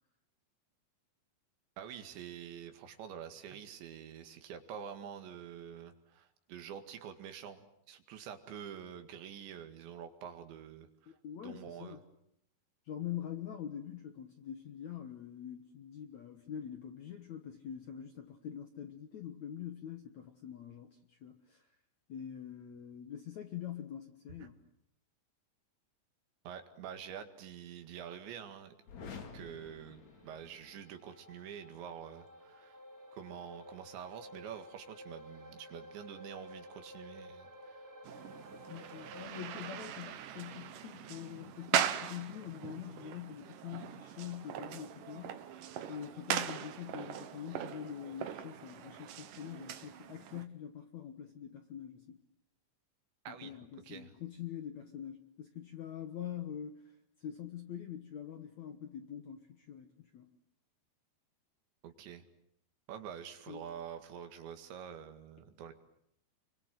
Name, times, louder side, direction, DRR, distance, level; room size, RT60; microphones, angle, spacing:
voice 1, 1.8-11.1 11.4-12.0 24.4-24.5 26.4-28.7 29.3-32.8 33.1-37.9 53.3-53.6 53.9-54.1 61.8-62.2 62.9-65.7, right 8 dB, 80° right, 8 dB, 4.3 m, -47 dB
voice 2, 11.1-12.0 12.9-21.7 22.1-24.5 38.7-45.5 45.9-52.2 53.3-60.3 63.5-63.6, left 9 dB, 65° left, 7 dB, 1.8 m, -44 dB
sound 1, 28.8-30.9, left 5 dB, 45° left, 3.2 m, -49 dB
sound 2, 28.9-39.3, equal, 5° right, 2.3 m, -53 dB
sound 3, 38.0-50.4, right 10 dB, 65° right, 2.3 m, -40 dB
29.5 x 23.5 x 7.8 m, 0.76 s
omnidirectional pair, 5.1 m